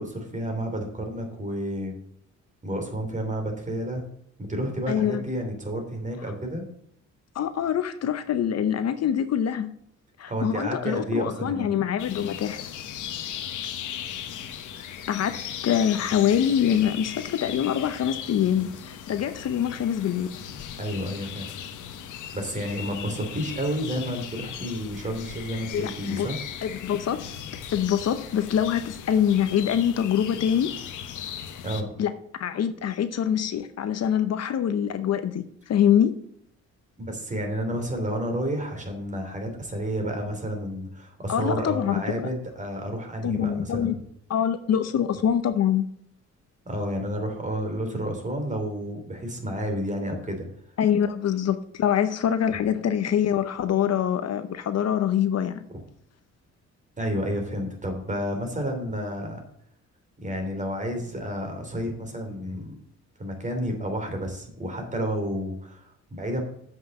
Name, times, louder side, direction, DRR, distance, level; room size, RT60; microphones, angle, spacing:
voice 1, 0.0-2.0 2.6-4.0 4.4-6.6 10.3-11.7 20.8-21.5 22.3-26.4 31.6-31.9 37.0-43.9 46.6-50.4 52.5-52.6 55.7-55.8 57.0-59.4 60.2-62.8 63.2-66.4, equal, 25° right, 3.1 m, -30 dB
voice 2, 4.9-5.2 7.3-9.7 10.2-12.7 15.1-20.3 25.7-26.3 26.6-27.3 27.7-30.7 32.0-32.1 32.4-36.2 41.3-42.2 43.2-44.0 44.3-45.8 50.8-55.7, left 9 dB, 55° left, 0.8 m, -24 dB
sound 1, 12.0-31.8, left 9 dB, 80° left, 1.1 m, -38 dB
7.8 x 5.9 x 7.1 m
cardioid pair, 90°, 30 cm